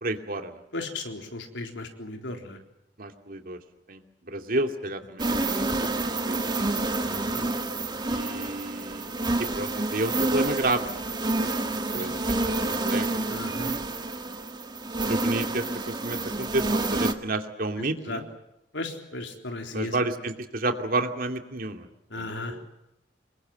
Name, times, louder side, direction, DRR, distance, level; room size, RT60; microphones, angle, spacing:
voice 1, 0.0-0.6 3.0-3.6 3.9-4.0 4.3-6.7 8.1-9.1 9.4-11.0 11.9-13.3 15.1-18.3 19.7-21.9 22.1-22.6, right 2 dB, 55° right, 5 dB, 2.6 m, -31 dB
voice 2, 0.7-2.6 5.2-5.4 7.0-7.4 11.9-12.2 13.3-13.7 17.8-18.2 18.7-20.0 22.1-22.6, left 2 dB, 90° left, 4 dB, 3.9 m, -36 dB
sound 1, 5.2-17.1, right 2 dB, 25° right, 1.7 m, -28 dB
27.0 x 22.5 x 7.8 m, 0.86 s
head